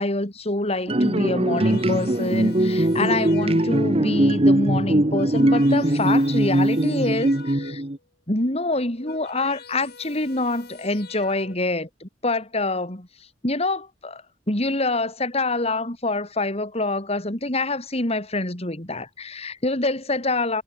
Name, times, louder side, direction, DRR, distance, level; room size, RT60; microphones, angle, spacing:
voice 1, 0.0-7.8 8.3-13.1 13.4-14.2 14.5-20.6, left 2 dB, 35° left, 3.9 m, -26 dB
sound 1, 0.9-8.0, right 1 dB, 35° right, 1.5 m, -21 dB
sound 2, 1.5-4.1 4.9-8.0 8.7-11.6, left 4 dB, 60° left, 7.7 m, -45 dB
head